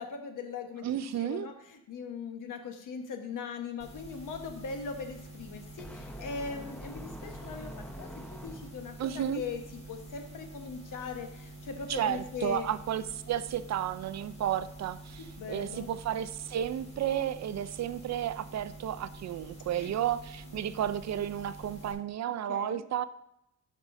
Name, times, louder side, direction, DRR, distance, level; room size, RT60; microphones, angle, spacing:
voice 1, 0.0-9.6 9.9-12.7 15.2-15.9 19.7-19.9 20.5-20.8 22.5-22.8, left 5 dB, 70° left, 5 dB, 1.2 m, -40 dB
voice 2, 0.8-1.5 9.0-9.4 11.9-23.0, right 10 dB, 55° right, 14 dB, 0.5 m, -32 dB
sound 1, 3.8-21.9, right 2 dB, 20° left, 1.8 m, -47 dB
sound 2, 5.8-9.0, equal, 5° left, 0.6 m, -45 dB
12.0 x 5.4 x 2.6 m, 0.81 s
cardioid pair, 120°, 33 cm